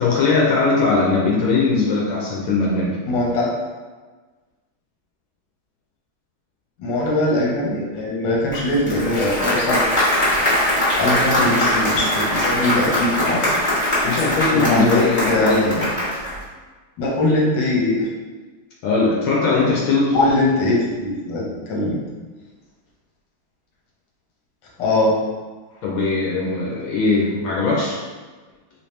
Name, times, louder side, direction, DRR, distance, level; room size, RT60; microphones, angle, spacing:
voice 1, 0.0-3.0 14.0-16.0 18.8-20.2 25.8-28.0, left 3 dB, 85° left, -3 dB, 1.4 m, -20 dB
voice 2, 3.1-3.6 6.8-9.9 11.0-13.5 14.5-15.8 17.0-18.1 20.1-22.0 24.8-25.2, left 1 dB, 65° left, -4 dB, 1.5 m, -21 dB
Applause, 8.5-16.4, left 1 dB, 30° left, 0.6 m, -21 dB
3.5 x 2.8 x 3.2 m, 1.3 s
omnidirectional pair, 2.2 m